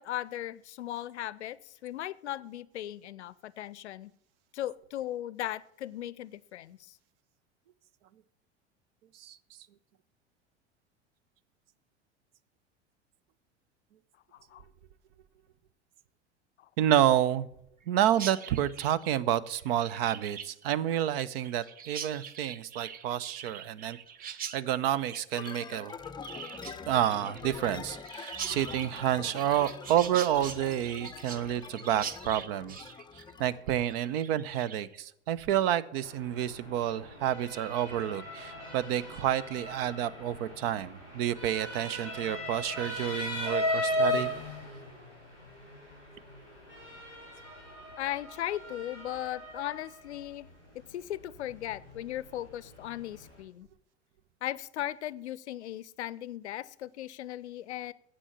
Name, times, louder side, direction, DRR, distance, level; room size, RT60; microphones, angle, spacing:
voice 1, 0.0-4.1 4.5-7.0 14.3-14.6 16.6-16.7 48.0-50.5 50.9-53.7 54.4-57.9, left 13 dB, 70° left, 20 dB, 0.6 m, -37 dB
voice 2, 16.8-17.5 17.9-25.9 26.9-32.8 33.1-44.3, right 11 dB, 55° right, 18 dB, 0.7 m, -29 dB
Chirp tweet, 18.1-35.0, right 7 dB, 25° right, 0.6 m, -43 dB
sound 1, 25.3-33.6, left 6 dB, 15° left, 0.6 m, -44 dB
Motor vehicle (road) / Siren, 36.0-53.4, left 1 dB, 80° right, 5.1 m, -37 dB
9.9 x 7.8 x 7.3 m, 0.73 s
figure-of-eight pair, 80°, 35 cm